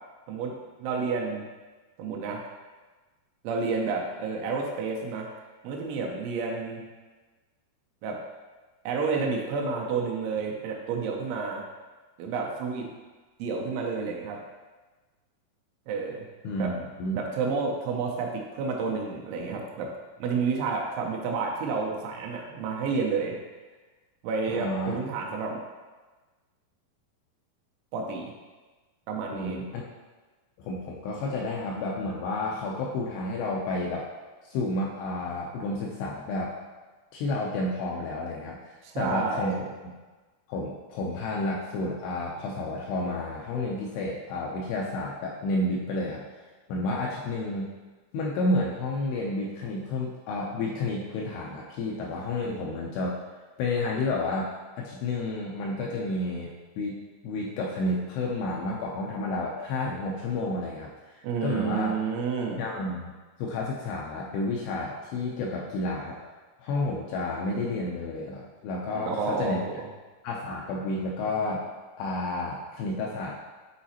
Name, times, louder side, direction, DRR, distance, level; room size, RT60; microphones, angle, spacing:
voice 1, 0.3-1.4 2.0-2.4 3.4-5.3 5.6-6.8 8.0-8.2 8.9-11.6 12.2-12.9 13.4-14.4 15.9-16.3 16.6-16.7 17.1-19.9 20.2-23.4 24.2-25.6 27.9-28.3 29.1-29.6 38.8-39.6 61.2-62.6 68.9-69.9, right 4 dB, 85° right, 0 dB, 3.1 m, -30 dB
voice 2, 16.4-17.2 24.5-25.0 29.3-29.8 30.6-34.1 34.4-36.5 37.1-39.5 39.8-39.9 40.5-46.2 46.7-47.7 48.1-53.2 53.6-60.9 61.4-62.0 62.6-63.1 63.4-66.2 66.6-69.6 70.2-71.7 72.0-73.4, left 2 dB, 80° left, -3 dB, 2.4 m, -31 dB
8.6 x 4.0 x 2.8 m, 1.3 s
omnidirectional pair, 5.2 m